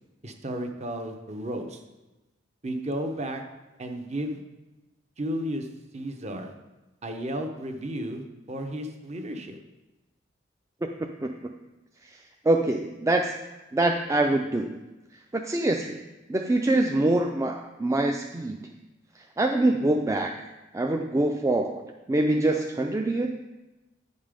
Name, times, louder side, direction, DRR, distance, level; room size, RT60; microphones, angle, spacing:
voice 1, 0.2-1.8 2.6-3.4 3.8-4.4 5.2-5.7 5.9-6.5 7.0-9.6, right 1 dB, 35° right, 5 dB, 1.0 m, -33 dB
voice 2, 12.4-13.3 13.7-14.8 15.3-16.0 16.3-18.6 19.4-20.4 20.7-21.8 22.1-23.3, right 2 dB, 15° right, 3 dB, 0.4 m, -24 dB
9.6 x 5.4 x 5.1 m, 1.1 s
head